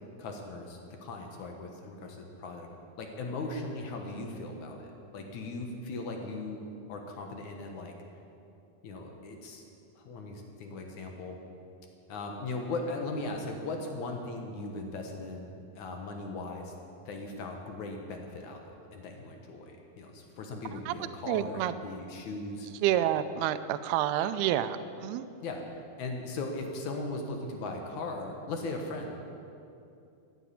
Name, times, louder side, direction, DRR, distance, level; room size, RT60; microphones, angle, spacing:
voice 1, 0.2-2.7 3.0-7.9 8.8-9.6 10.0-11.4 12.1-16.7 17.1-22.7 25.4-29.3, left 2 dB, 65° left, 3 dB, 2.1 m, -38 dB
voice 2, 21.3-21.7 22.8-25.3, right 12 dB, 80° right, 11 dB, 2.5 m, -28 dB
14.5 x 9.3 x 8.5 m, 2.6 s
omnidirectional pair, 4.7 m